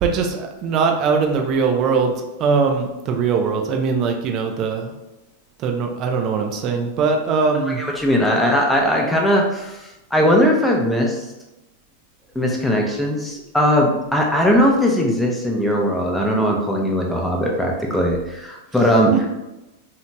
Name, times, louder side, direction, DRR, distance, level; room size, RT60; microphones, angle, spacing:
voice 1, 0.0-4.9 5.6-7.8, right 5 dB, 45° right, 3 dB, 0.5 m, -21 dB
voice 2, 7.8-11.2 12.3-19.3, equal, 5° left, -1 dB, 0.6 m, -19 dB
2.8 x 2.7 x 2.2 m, 0.97 s
hypercardioid pair, 105°, 0 cm